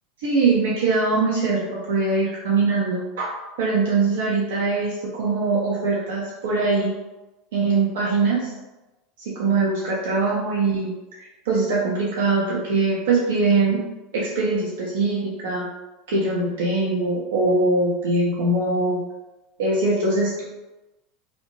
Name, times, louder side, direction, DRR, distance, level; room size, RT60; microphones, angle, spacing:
voice 1, 0.2-3.3 3.6-6.9 7.5-8.5 9.2-10.9 11.5-13.8 14.1-15.7 16.1-19.0 19.6-20.4, right 3 dB, 65° right, -5 dB, 0.5 m, -22 dB
2.8 x 2.0 x 2.9 m, 1.1 s
figure-of-eight pair, 80°, 0 cm